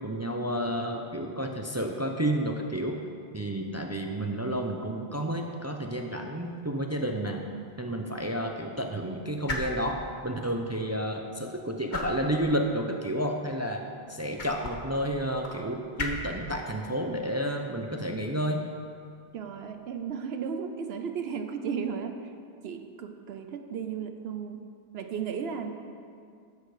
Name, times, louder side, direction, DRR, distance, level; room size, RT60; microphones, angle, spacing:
voice 1, 0.0-3.0 3.3-7.4 7.8-13.8 14.1-18.7, right 1 dB, 20° right, 3 dB, 0.5 m, -31 dB
sound 1, 6.4-20.0, left 2 dB, 50° left, 1.1 m, -42 dB
voice 2, 19.3-22.2 22.6-24.6 24.9-25.7, right 6 dB, 75° right, 7 dB, 1.0 m, -34 dB
13.0 x 6.5 x 4.9 m, 2.3 s
omnidirectional pair, 1.1 m